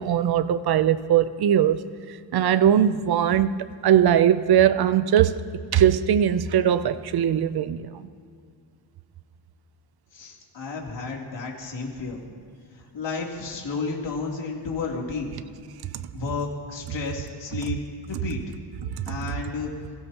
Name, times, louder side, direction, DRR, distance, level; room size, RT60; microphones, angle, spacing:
voice 1, 0.0-1.8 2.3-3.5 3.8-5.4 5.7-7.9, right 10 dB, 55° right, 0.7 m, -20 dB
voice 2, 10.1-12.2 12.7-15.4 16.1-17.8 18.1-18.4 19.1-19.7, left 4 dB, 65° left, 3.4 m, -32 dB
28.5 x 16.5 x 3.0 m
wide cardioid pair, 130°, 46 cm